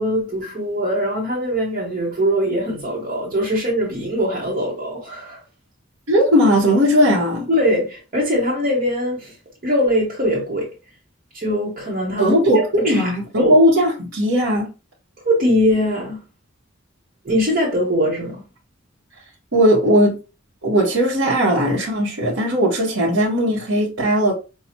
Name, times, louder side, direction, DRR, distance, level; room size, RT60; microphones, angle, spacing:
voice 1, 0.0-5.4 7.5-9.3 9.6-10.7 11.3-13.5 15.2-16.2 17.2-18.4, equal, 45° right, 1.0 m, -22 dB
voice 2, 6.1-7.5 12.2-14.7 19.5-20.2 20.6-24.3, equal, 80° right, 1.1 m, -17 dB
5.7 x 2.3 x 2.9 m
head